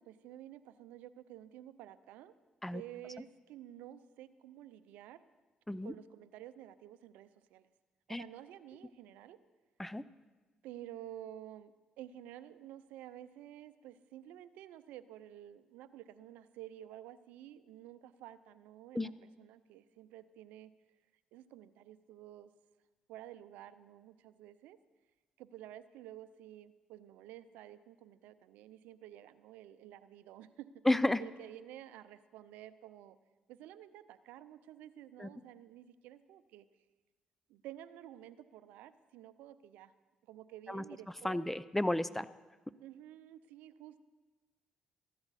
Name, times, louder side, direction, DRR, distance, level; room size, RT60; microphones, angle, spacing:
voice 1, 0.0-2.3 2.7-5.2 5.8-7.7 8.1-9.4 10.6-20.7 21.3-22.5 23.1-24.8 25.4-30.7 31.2-33.2 33.5-36.6 37.5-39.9 40.3-41.5 42.8-44.0, right 12 dB, 85° right, 14 dB, 0.5 m, -51 dB
voice 2, 30.9-31.2 35.2-35.3 40.7-40.8 41.2-42.3, left 1 dB, 10° left, 17 dB, 0.5 m, -32 dB
14.5 x 12.5 x 4.1 m, 1.3 s
supercardioid pair, 60°, 3 cm